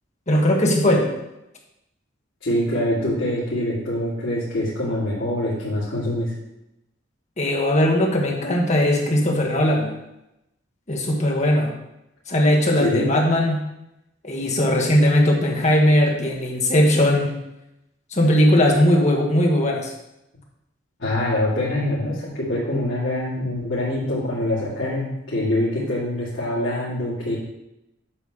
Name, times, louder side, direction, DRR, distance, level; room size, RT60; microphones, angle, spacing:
voice 1, 0.3-1.1 7.4-9.9 10.9-11.7 12.3-13.6 14.2-17.4 18.1-19.9, left 1 dB, 40° left, 0 dB, 1.5 m, -19 dB
voice 2, 2.4-6.3 12.8-13.1 21.0-27.3, left 1 dB, 80° left, -11 dB, 2.7 m, -24 dB
8.9 x 3.2 x 6.6 m, 0.89 s
head